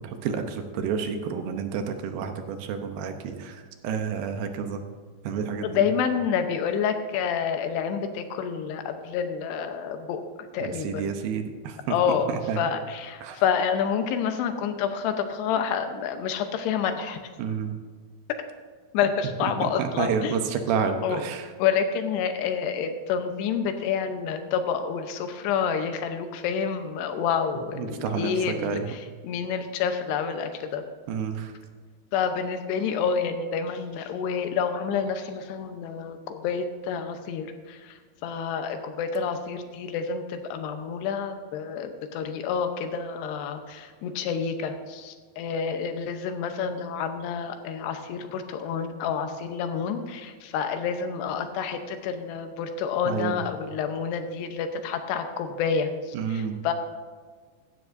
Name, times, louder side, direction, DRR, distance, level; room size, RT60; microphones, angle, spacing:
voice 1, 0.2-3.6 3.8-4.8 5.3-5.7 10.6-11.7 12.3-12.6 13.2-13.4 17.4-17.7 19.4-21.5 27.8-28.3 28.6-28.9 31.1-31.5 53.1-53.4 56.1-56.5, right 6 dB, 75° right, 6 dB, 2.5 m, -29 dB
voice 2, 5.6-10.2 10.5-11.1 11.9-17.2 18.9-20.4 21.0-21.2 21.6-30.8 32.1-37.9 38.2-55.9 56.3-56.7, left 7 dB, 85° left, 7 dB, 3.0 m, -28 dB
16.0 x 12.5 x 2.6 m, 1.5 s
omnidirectional pair, 4.7 m